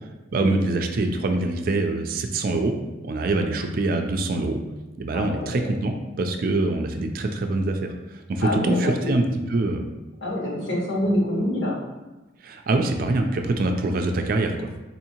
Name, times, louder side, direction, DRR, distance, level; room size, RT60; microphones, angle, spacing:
voice 1, 0.3-2.7 3.0-4.6 5.0-7.9 8.3-9.2 9.5-9.9 12.4-14.7, right 2 dB, 50° right, 5 dB, 0.3 m, -24 dB
voice 2, 5.1-5.7 8.4-9.3 10.2-11.8, left 1 dB, 75° left, -5 dB, 1.3 m, -26 dB
4.1 x 2.7 x 2.9 m, 1.1 s
head